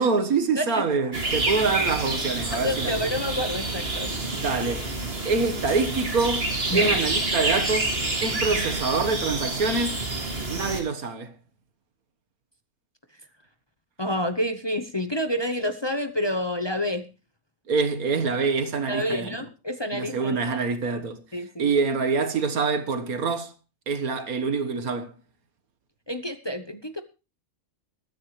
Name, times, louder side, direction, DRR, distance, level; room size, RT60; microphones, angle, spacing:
voice 1, 0.0-3.3 4.3-4.9 5.3-6.5 6.7-7.9 8.2-10.0 10.5-11.3 17.7-19.4 19.9-21.2 21.6-23.5 23.9-25.1, right 4 dB, 90° right, 1.9 m, -25 dB
sound 1, 1.1-10.8, right 2 dB, 45° right, 2.6 m, -28 dB
voice 2, 2.5-4.1 6.7-6.9 14.0-17.1 18.9-20.6 21.3-21.7 26.1-27.0, left 1 dB, 20° left, 0.8 m, -28 dB
21.5 x 9.4 x 3.2 m
omnidirectional pair, 1.5 m